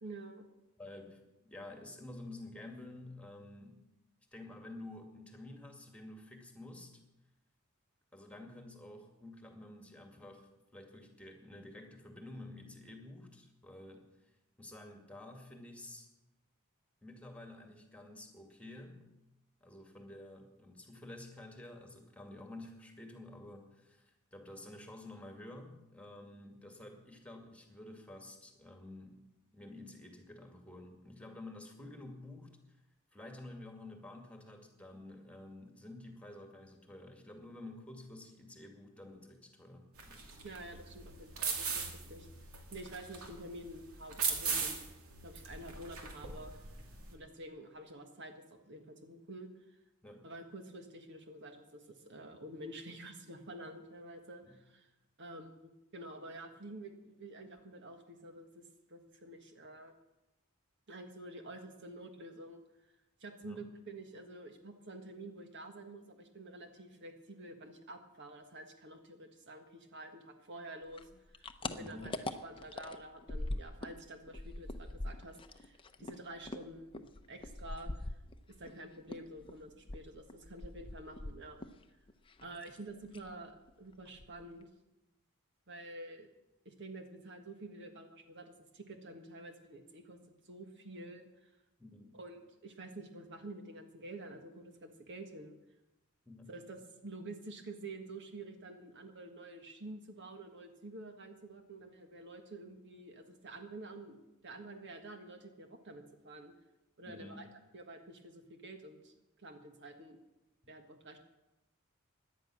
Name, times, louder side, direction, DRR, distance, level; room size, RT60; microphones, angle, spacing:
voice 1, 0.0-0.5 40.4-41.7 41.9-42.3 42.7-44.8 45.2-46.5 47.1-49.5 50.2-54.9 55.2-59.9 60.9-62.6 63.2-72.1 72.4-78.2 78.6-81.7 82.4-84.7 85.7-86.3 86.6-90.2 90.4-91.5 92.1-95.5 96.5-104.2 104.4-106.5 107.0-107.5 107.7-110.2 110.7-111.2, right 2 dB, 55° right, 6 dB, 1.6 m, -49 dB
voice 2, 0.8-3.8 4.3-7.0 8.1-14.3 14.6-16.1 17.0-19.1 19.6-29.2 29.5-32.5 33.1-40.3 50.0-50.3 54.4-54.6 63.4-63.6 71.8-72.2 91.8-92.2 96.3-96.6 107.1-107.5 110.6-110.7, left 1 dB, 5° left, 3 dB, 2.1 m, -50 dB
sound 1, 40.0-47.1, right 5 dB, 75° right, 2.6 m, -39 dB
sound 2, 70.9-74.0 74.3-78.7 79.1-81.8 82.1-82.8 83.1-83.3 83.7-83.8 84.1-84.6, left 2 dB, 25° left, 0.8 m, -42 dB
17.5 x 11.0 x 6.3 m, 0.96 s
head